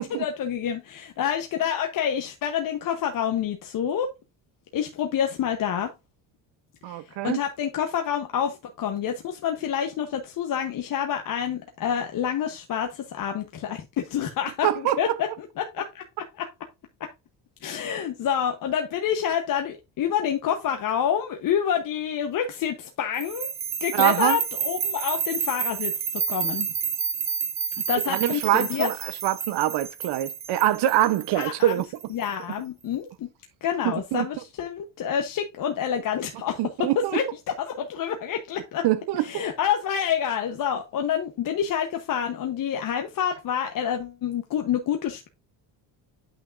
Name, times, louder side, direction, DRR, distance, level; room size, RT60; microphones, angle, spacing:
voice 1, 0.0-4.1 4.7-5.9 6.9-15.3 15.6-16.5 17.0-17.1 17.6-23.5 23.8-26.7 27.9-28.9 31.4-31.7 32.1-33.3 33.6-38.8 39.2-45.3, left 8 dB, 50° left, 1.1 m, -28 dB
voice 2, 6.8-7.4 14.6-15.2 23.9-24.4 28.1-31.8 33.8-34.3 36.6-37.2 38.8-39.4, right 14 dB, 70° right, 0.9 m, -24 dB
sound 1, 23.2-32.2, right 7 dB, 40° right, 0.9 m, -30 dB
9.1 x 5.8 x 2.6 m
cardioid pair, 140°, 42 cm